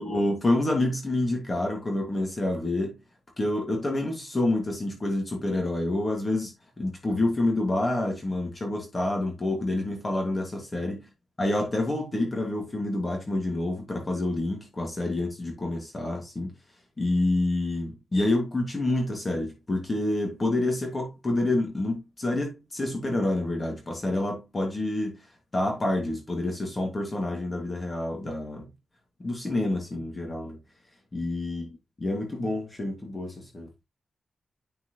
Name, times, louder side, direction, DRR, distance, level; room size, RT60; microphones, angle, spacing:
voice 1, 0.0-3.0 3.4-11.0 11.4-16.5 17.0-25.2 25.5-28.7 29.2-30.6 31.1-31.7 32.0-33.7, left 2 dB, 25° left, 2.0 m, -28 dB
10.0 x 4.6 x 3.0 m
wide cardioid pair, 165°, 0 cm